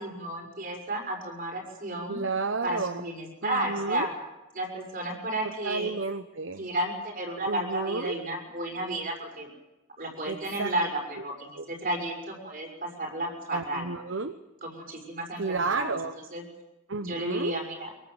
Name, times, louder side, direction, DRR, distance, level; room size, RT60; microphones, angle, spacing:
voice 1, 0.0-2.2 2.6-4.1 4.5-5.9 6.6-9.5 10.0-13.9 14.6-16.0 16.3-16.4 17.0-17.9, right 1 dB, 45° right, 2 dB, 6.2 m, -32 dB
voice 2, 2.1-3.0 3.4-4.1 5.6-6.7 7.5-8.1 10.3-10.7 11.6-11.7 13.5-14.3 15.4-16.2 16.9-17.5, right 4 dB, 65° right, 10 dB, 1.0 m, -31 dB
23.5 x 22.5 x 8.0 m, 1.1 s
head